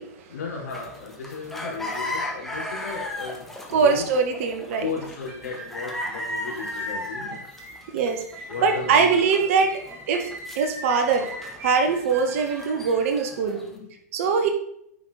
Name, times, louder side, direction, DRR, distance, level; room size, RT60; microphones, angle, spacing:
voice 1, 0.3-4.1 4.8-7.4 8.5-9.2 13.5-13.9 14.4-14.5, left 5 dB, 65° left, -3 dB, 3.9 m, -35 dB
sound 1, 0.7-13.7, left 1 dB, ahead, 1.7 m, -36 dB
voice 2, 3.7-4.9 7.9-8.2 8.6-9.7 10.1-11.3 11.6-13.6 14.1-14.5, right 5 dB, 55° right, 4 dB, 1.8 m, -22 dB
sound 2, 5.0-12.8, right 2 dB, 30° right, 1.8 m, -41 dB
9.7 x 6.1 x 4.1 m, 0.73 s
hypercardioid pair, 105°, 9 cm